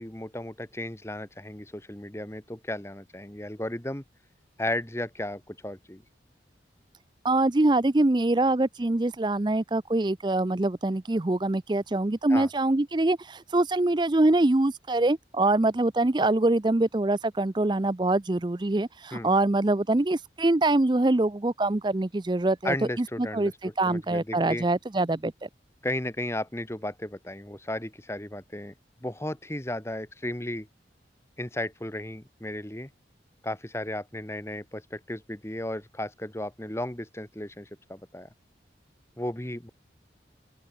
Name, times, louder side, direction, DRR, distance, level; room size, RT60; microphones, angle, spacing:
voice 1, 0.0-4.0 4.6-6.0 12.3-12.5 19.1-19.3 22.6-23.5 23.8-24.6 25.8-28.7 29.0-30.7 31.4-32.9 33.4-38.3 39.2-39.7, left 1 dB, 15° left, 1.6 m, -34 dB
voice 2, 7.2-25.5, right 2 dB, 25° right, 0.5 m, -24 dB
open air
head